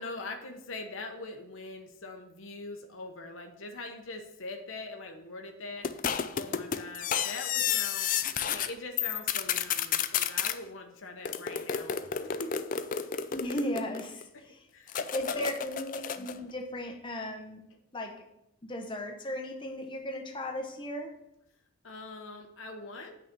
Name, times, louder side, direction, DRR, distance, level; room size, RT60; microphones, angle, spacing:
voice 1, 0.0-11.9 12.2-12.7 14.3-14.4 14.7-15.6 21.8-23.1, left 2 dB, 65° left, 3 dB, 0.9 m, -42 dB
sound 1, 5.8-8.7 9.0-10.6 11.2-14.2 14.9-16.4, left 8 dB, 40° left, 0.4 m, -31 dB
voice 2, 13.3-14.3 15.0-17.7 17.9-18.3 18.6-21.1, left 1 dB, 20° left, 3 dB, 0.9 m, -36 dB
8.6 x 4.1 x 6.6 m, 0.81 s
head